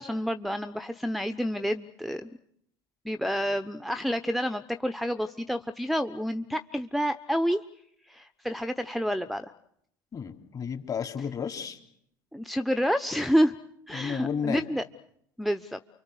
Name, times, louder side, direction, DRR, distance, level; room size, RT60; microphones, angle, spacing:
voice 1, 0.0-2.3 3.0-7.6 8.1-9.5 12.3-13.5 13.9-14.8 15.4-15.8, equal, ahead, 13 dB, 1.0 m, -29 dB
voice 2, 10.1-11.8 13.9-14.6, left 7 dB, 35° left, 5 dB, 3.4 m, -32 dB
29.5 x 24.5 x 6.5 m, 0.73 s
hypercardioid pair, 75°, 11 cm